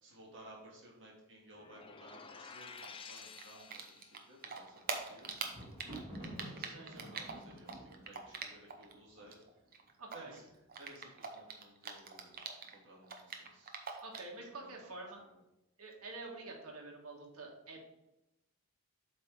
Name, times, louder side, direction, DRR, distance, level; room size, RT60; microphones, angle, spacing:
voice 1, 0.0-5.3 6.2-9.4 10.1-10.5 10.8-12.4 12.7-13.7 14.4-15.0 15.3-15.4, right 1 dB, 60° right, -4 dB, 1.9 m, -57 dB
sound 1, 1.5-4.3, left 5 dB, 25° left, 0.5 m, -52 dB
Typing, 2.8-4.2 4.4-8.9 9.2-12.7 13.0-14.4, right 5 dB, 45° right, 0.8 m, -43 dB
Thunder, 4.6-9.7 10.4-10.9 11.2-11.3, right 1 dB, 30° right, 1.8 m, -50 dB
voice 2, 6.6-7.0 10.0-10.4 14.0-15.2 15.8-17.9, right 2 dB, 80° right, 0 dB, 1.6 m, -48 dB
7.8 x 3.4 x 4.6 m, 0.92 s
head